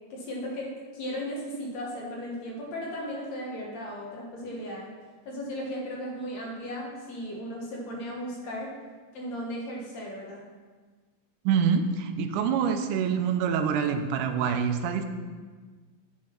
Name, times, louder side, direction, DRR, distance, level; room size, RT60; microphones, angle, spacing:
voice 1, 0.1-4.9 5.3-8.7 9.1-10.4, equal, 60° left, -2 dB, 2.3 m, -36 dB
voice 2, 11.5-15.0, right 7 dB, 80° right, 6 dB, 2.1 m, -26 dB
7.2 x 6.8 x 5.9 m, 1.4 s
omnidirectional pair, 3.8 m